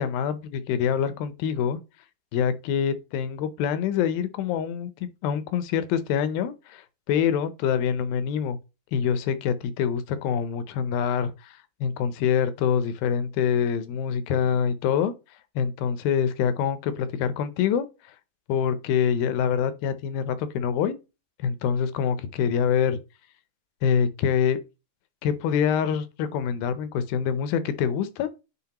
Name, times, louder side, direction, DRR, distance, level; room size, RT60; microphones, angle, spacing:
voice 1, 0.0-1.8 2.3-4.9 5.2-8.6 8.9-15.1 15.6-17.9 18.5-20.9 21.4-23.0 23.8-24.6 25.2-28.3, left 7 dB, 80° left, 2.3 m, -25 dB
9.6 x 3.8 x 2.9 m
omnidirectional pair, 4.4 m